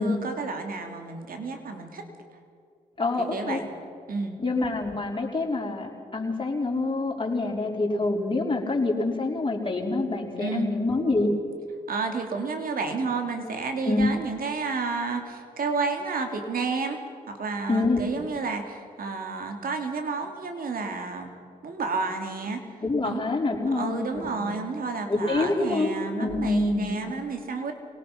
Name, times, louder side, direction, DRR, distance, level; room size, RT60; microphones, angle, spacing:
voice 1, 0.0-2.1 3.2-3.7 4.1-4.4 10.4-10.7 11.9-17.0 17.3-21.3 21.6-22.6 23.0-23.2 23.7-27.7, right 4 dB, 65° right, 5 dB, 2.9 m, -31 dB
voice 2, 3.0-3.6 4.4-11.3 13.8-14.1 17.7-18.1 22.8-24.6 25.1-25.9 26.2-27.0, left 2 dB, 30° left, -1 dB, 4.8 m, -26 dB
24.5 x 18.0 x 5.9 m, 2.2 s
supercardioid pair, 50°, 16 cm